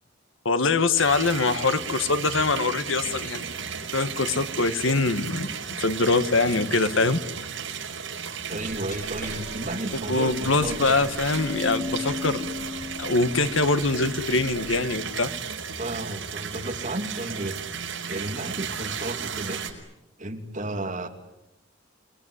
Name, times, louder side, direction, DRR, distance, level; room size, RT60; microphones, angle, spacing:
voice 1, 0.4-3.4 3.9-5.5 5.8-7.2 10.1-12.4 13.0-15.3, left 3 dB, 80° left, 11 dB, 1.6 m, -23 dB
sound 1, 1.0-19.7, right 6 dB, 70° right, 5.3 m, -34 dB
voice 2, 8.5-11.1 15.8-17.6 18.1-19.6 20.2-21.1, right 1 dB, 40° right, 4 dB, 2.9 m, -33 dB
Glass, 8.7-14.8, left 3 dB, 40° left, 7.8 m, -37 dB
28.5 x 21.0 x 9.9 m, 0.90 s
head